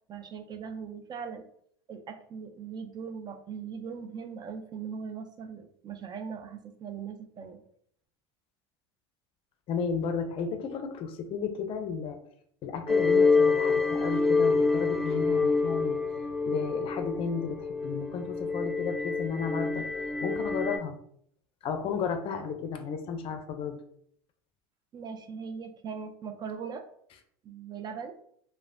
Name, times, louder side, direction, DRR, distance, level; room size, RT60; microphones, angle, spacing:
voice 1, 0.1-1.5 1.9-7.6 24.9-26.8 27.4-28.2, right 6 dB, 35° right, 7 dB, 0.4 m, -40 dB
voice 2, 9.7-12.2 12.6-16.0 16.5-19.8 20.2-21.0 21.6-23.8, left 6 dB, 45° left, 7 dB, 0.5 m, -33 dB
sound 1, 12.9-20.8, left 4 dB, ahead, 0.6 m, -26 dB
3.1 x 2.1 x 2.5 m, 0.65 s
hypercardioid pair, 90°, 13 cm